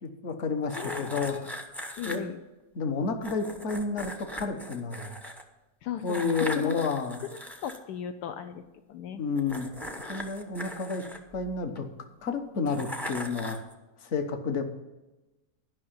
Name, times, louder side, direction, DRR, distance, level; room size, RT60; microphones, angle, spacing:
voice 1, 0.0-1.6 2.0-2.2 2.7-5.2 6.0-7.3 9.1-9.7 10.1-11.0 11.3-11.9 12.2-13.6 14.0-14.6, left 4 dB, 50° left, 7 dB, 1.3 m, -30 dB
sound 1, 0.7-2.2 3.2-5.4 6.0-7.8 9.3-11.8 12.7-13.7, equal, ahead, 0.7 m, -39 dB
voice 2, 2.0-2.3 5.8-6.3 6.6-6.8 7.6-8.6 8.9-9.2, left 10 dB, 80° left, 8 dB, 1.1 m, -36 dB
11.5 x 5.7 x 8.1 m, 1.1 s
omnidirectional pair, 1.8 m